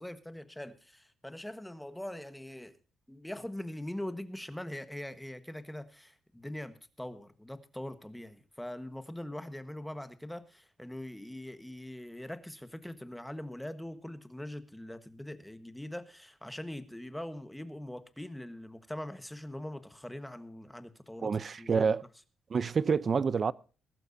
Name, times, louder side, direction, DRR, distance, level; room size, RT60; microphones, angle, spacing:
voice 1, 0.0-2.8 3.1-21.9, left 1 dB, 5° left, 1.3 m, -42 dB
voice 2, 21.2-22.0 22.5-23.5, right 5 dB, 40° right, 0.6 m, -28 dB
21.5 x 12.5 x 2.7 m
cardioid pair, 140°, 0 cm